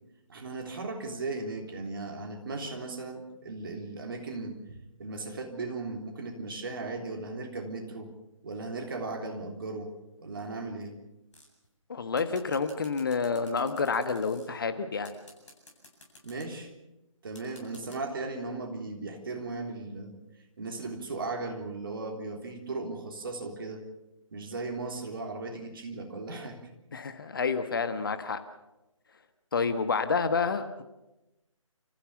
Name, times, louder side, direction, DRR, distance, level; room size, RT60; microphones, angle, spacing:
voice 1, 0.3-8.1 8.4-9.9 10.2-11.0 16.2-16.7 17.2-20.2 20.6-23.8 24.3-26.6, right 3 dB, 40° right, 3 dB, 3.5 m, -37 dB
sound 1, 11.3-11.7 12.2-14.5 15.0-16.5 17.3-18.0, left 1 dB, 60° left, 8.0 m, -53 dB
voice 2, 11.9-15.1 26.9-28.4 29.5-30.8, left 5 dB, 40° left, 9 dB, 1.4 m, -29 dB
29.5 x 15.0 x 7.1 m, 0.97 s
figure-of-eight pair, 150°, 17 cm